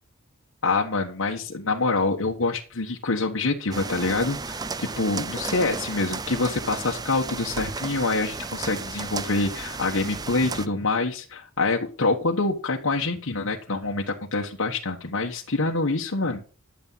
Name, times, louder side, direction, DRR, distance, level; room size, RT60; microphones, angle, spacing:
voice 1, 0.6-16.5, left 3 dB, 70° left, 0 dB, 1.3 m, -26 dB
sound 1, 3.7-10.7, right 4 dB, 20° right, 0.4 m, -34 dB
12.0 x 7.1 x 5.6 m, 0.38 s
head